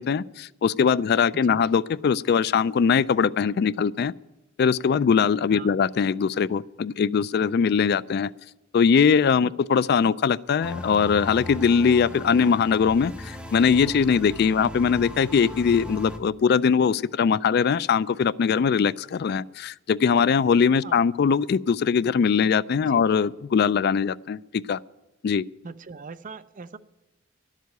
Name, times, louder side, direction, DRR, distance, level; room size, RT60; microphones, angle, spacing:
voice 1, 0.0-4.1 4.6-8.3 8.7-24.8 25.2-25.4, left 6 dB, 55° left, 19 dB, 0.3 m, -21 dB
sound 1, 10.6-16.2, equal, 5° right, 1.3 m, -38 dB
voice 2, 25.6-26.8, right 4 dB, 40° right, 13 dB, 0.5 m, -40 dB
12.0 x 7.5 x 9.3 m, 1.0 s
head